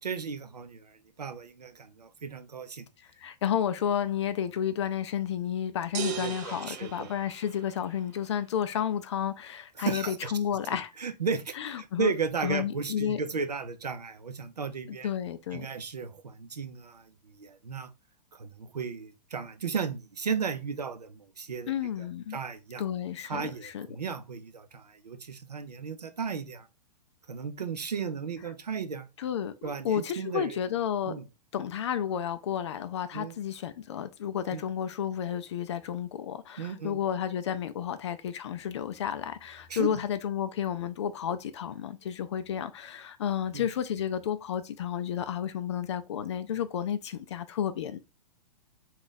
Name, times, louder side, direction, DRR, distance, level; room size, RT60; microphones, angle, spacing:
voice 1, 0.0-2.8 6.2-7.1 9.8-10.3 11.0-15.1 15.5-17.9 18.3-21.7 22.0-22.1 22.3-22.8 23.2-26.7 27.3-29.1 29.6-30.6 31.1-31.2 33.1-33.3 34.5-34.6 36.6-37.0 39.7-40.0 43.5-43.7, right 5 dB, 75° right, 0.6 m, -35 dB
voice 2, 3.0-10.9 11.5-12.1 12.4-13.2 14.9-15.7 21.7-22.4 22.8-23.9 29.2-31.2 31.5-48.0, left 9 dB, 45° left, 0.4 m, -31 dB
sound 1, 5.9-8.0, right 10 dB, 30° right, 0.4 m, -38 dB
3.9 x 2.4 x 3.6 m
figure-of-eight pair, 110°, 21 cm